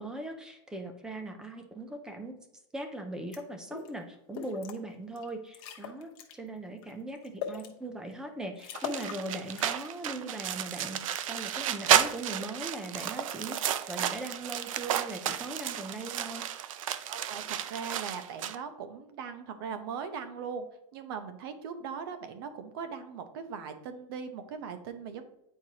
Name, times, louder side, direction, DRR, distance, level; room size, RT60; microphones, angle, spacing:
voice 1, 0.0-2.4 2.7-6.1 6.4-16.4, right 2 dB, 5° right, 6 dB, 0.4 m, -39 dB
sound 1, 3.3-3.4 3.7-3.9 4.3-4.8 5.2-5.3 5.5-6.3 6.8-7.7 8.2-8.3 8.6-9.2 9.5-9.9, left 7 dB, 45° left, 1.0 m, -40 dB
sound 2, 8.7-18.6, right 10 dB, 90° right, 0.5 m, -32 dB
voice 2, 17.1-20.7 20.9-25.2, right 6 dB, 45° right, 9 dB, 0.8 m, -39 dB
9.1 x 4.6 x 2.8 m, 0.82 s
supercardioid pair, 175°, 17 cm